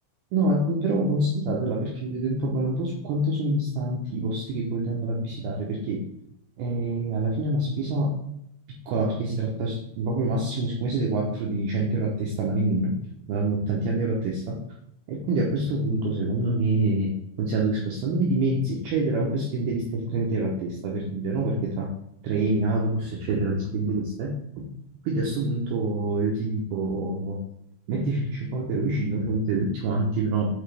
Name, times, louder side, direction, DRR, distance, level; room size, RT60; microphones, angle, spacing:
voice 1, 0.3-6.0 6.6-8.2 8.9-13.0 13.3-14.6 15.1-21.9 22.2-24.6 25.0-27.4 27.9-30.5, right 2 dB, 85° right, -2 dB, 2.1 m, -26 dB
7.9 x 4.2 x 3.3 m, 0.76 s
omnidirectional pair, 5.7 m